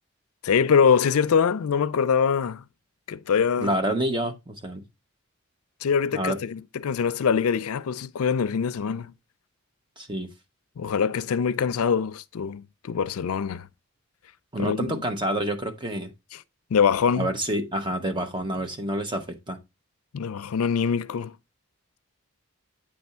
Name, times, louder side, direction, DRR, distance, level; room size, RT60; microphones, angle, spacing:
voice 1, 0.4-2.6 3.1-3.8 5.8-9.1 10.8-13.7 14.6-15.0 16.3-16.4 16.7-17.3 20.1-21.3, left 6 dB, 80° left, 0.4 m, -24 dB
voice 2, 3.6-4.8 6.1-6.4 10.0-10.3 14.5-16.1 17.2-19.6, right 1 dB, 20° right, 0.8 m, -28 dB
8.7 x 3.5 x 4.2 m
head